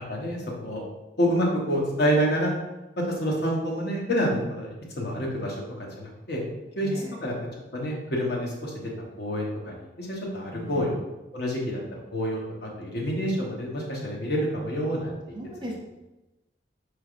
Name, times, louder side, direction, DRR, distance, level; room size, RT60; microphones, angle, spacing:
voice 1, 0.1-0.8 1.2-2.5 3.0-6.4 6.8-7.3 7.7-8.9 9.2-11.0 11.3-11.8 12.1-15.3, equal, 60° left, -2 dB, 0.9 m, -28 dB
voice 2, 6.8-7.2 10.5-11.0 15.3-15.8, equal, 25° right, -2 dB, 0.6 m, -37 dB
4.5 x 3.3 x 2.4 m, 1.0 s
head